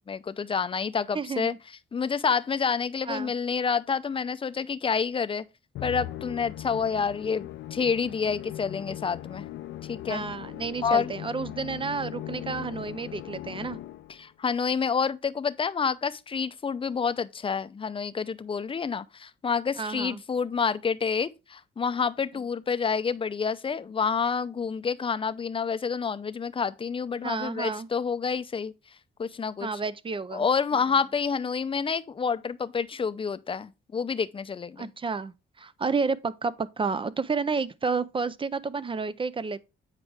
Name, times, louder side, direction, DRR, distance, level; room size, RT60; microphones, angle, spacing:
voice 1, 0.1-1.5 1.9-5.4 5.8-9.5 9.9-10.2 10.8-11.1 14.1-29.7 30.3-34.9, left 6 dB, 25° left, 0.5 m, -28 dB
voice 2, 1.1-1.6 3.1-3.3 10.1-13.8 19.8-20.2 27.2-27.9 29.6-30.5 34.8-39.6, right 4 dB, 25° right, 0.5 m, -31 dB
Musical instrument, 5.7-14.2, left 13 dB, 75° left, 0.6 m, -39 dB
8.2 x 4.9 x 3.4 m
cardioid pair, 90°, 20 cm